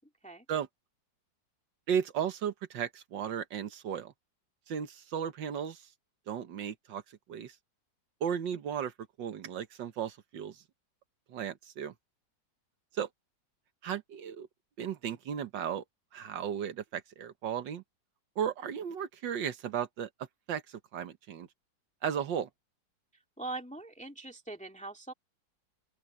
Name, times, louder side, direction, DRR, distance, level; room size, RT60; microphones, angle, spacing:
voice 1, 1.9-4.1 4.7-5.9 6.3-7.0 7.3-7.5 8.2-8.9 9.2-10.6 11.3-11.9 12.9-13.1 13.8-14.5 14.8-15.8 16.1-17.8 18.4-20.1 20.5-21.5 22.0-22.5, right 8 dB, 75° right, 1.8 m, -35 dB
voice 2, 23.4-25.1, right 2 dB, 5° left, 2.0 m, -41 dB
open air
omnidirectional pair, 2.0 m